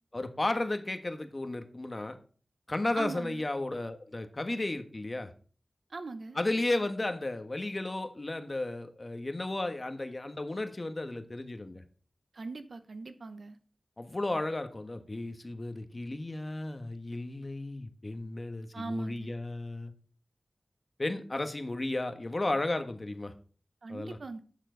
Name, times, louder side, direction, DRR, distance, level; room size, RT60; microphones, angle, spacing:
voice 1, 0.1-2.2 2.7-5.3 6.3-11.8 14.0-19.9 21.0-23.3 23.9-24.2, left 2 dB, 45° left, 8 dB, 1.4 m, -34 dB
voice 2, 2.9-3.5 5.9-6.4 12.3-13.6 18.7-19.3 23.8-24.4, right 3 dB, 75° right, 10 dB, 0.9 m, -40 dB
12.0 x 7.4 x 3.9 m, 0.42 s
cardioid pair, 45°, 0 cm